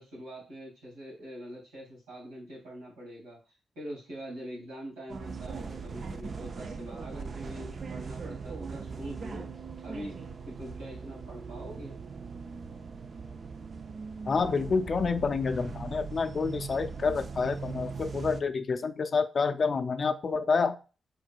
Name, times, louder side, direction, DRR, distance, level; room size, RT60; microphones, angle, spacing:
voice 1, 0.0-3.4 3.8-9.5 9.8-12.0, equal, 90° right, -3 dB, 2.1 m, -44 dB
sound 1, 5.1-18.4, right 5 dB, 55° right, 0.5 m, -40 dB
voice 2, 14.3-20.7, left 5 dB, 55° left, 8 dB, 0.3 m, -28 dB
4.8 x 3.9 x 2.2 m, 0.33 s
supercardioid pair, 45°, 0 cm